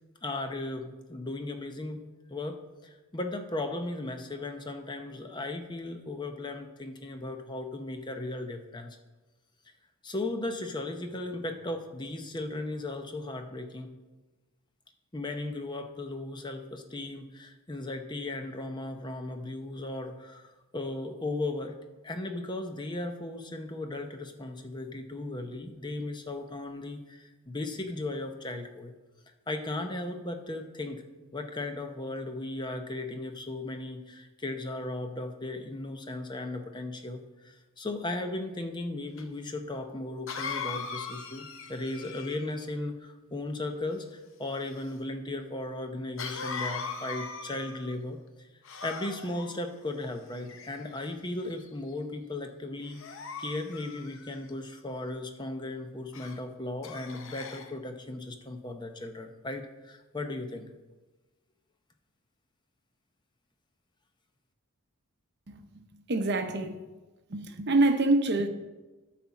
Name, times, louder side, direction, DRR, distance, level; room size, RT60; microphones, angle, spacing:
voice 1, 0.2-2.0 2.3-9.0 10.0-13.9 15.1-21.7 22.0-28.9 29.5-31.0 31.3-48.5 48.8-60.7, left 2 dB, 20° left, 0.7 m, -36 dB
Cough, 39.2-39.3 40.3-42.6 46.2-47.9 48.6-49.5 50.3-51.0 51.6-51.9 52.9-54.5 56.1-56.4 56.8-57.7, left 5 dB, 60° left, 0.7 m, -39 dB
voice 2, 65.5-66.8 67.3-68.5, right 2 dB, 50° right, 0.7 m, -26 dB
10.0 x 4.3 x 7.0 m
head